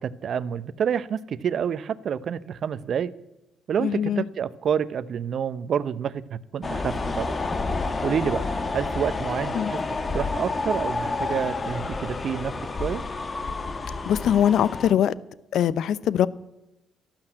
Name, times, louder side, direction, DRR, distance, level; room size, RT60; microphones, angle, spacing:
voice 1, 0.0-3.1 3.7-7.4 8.0-8.5 8.7-12.5 12.8-13.0, right 8 dB, 60° right, 0.8 m, -28 dB
voice 2, 3.8-4.2 9.5-9.7 14.1-15.1 15.5-16.3, left 9 dB, 65° left, 0.7 m, -22 dB
sound 1, 6.6-14.9, left 3 dB, 35° left, 1.7 m, -29 dB
12.5 x 12.0 x 8.9 m
hypercardioid pair, 55°, 0 cm